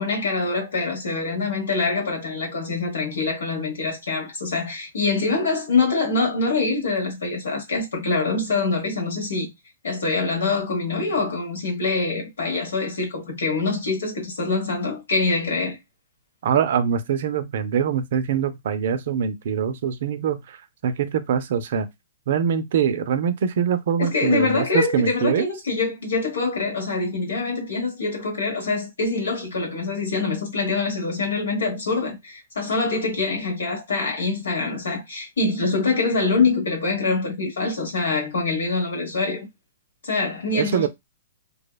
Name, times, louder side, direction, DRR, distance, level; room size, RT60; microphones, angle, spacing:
voice 1, 0.0-9.5 9.8-15.8 24.0-39.5 40.0-40.9, left 3 dB, 85° left, 1.1 m, -24 dB
voice 2, 16.4-20.6 20.8-21.9 22.3-25.5 40.5-40.9, right 7 dB, 60° right, 0.4 m, -23 dB
2.6 x 2.1 x 2.2 m
hypercardioid pair, 140°, 0 cm